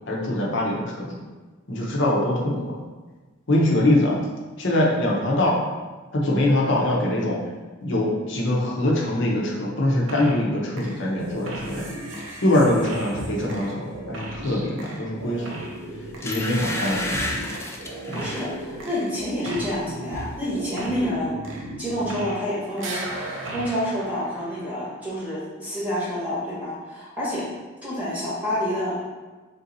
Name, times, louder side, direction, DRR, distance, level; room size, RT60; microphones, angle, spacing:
voice 1, 0.1-1.1 1.7-2.8 3.5-4.2 4.6-5.6 6.1-7.4 7.8-11.8 12.4-15.5 16.2-17.4 18.1-18.2, left 1 dB, 65° left, -3 dB, 0.8 m, -23 dB
sound 1, 10.1-10.5 10.8-22.5 22.8-25.0, right 1 dB, 70° right, 0.6 m, -36 dB
sound 2, 15.5-15.7 16.2-18.5 19.0-19.2 19.5-20.3 20.5-20.6, left 1 dB, 15° left, 0.4 m, -32 dB
voice 2, 18.1-21.3 21.8-23.0 23.5-27.5 27.8-29.0, equal, 10° right, -8 dB, 1.0 m, -28 dB
3.8 x 2.7 x 3.9 m, 1.3 s
head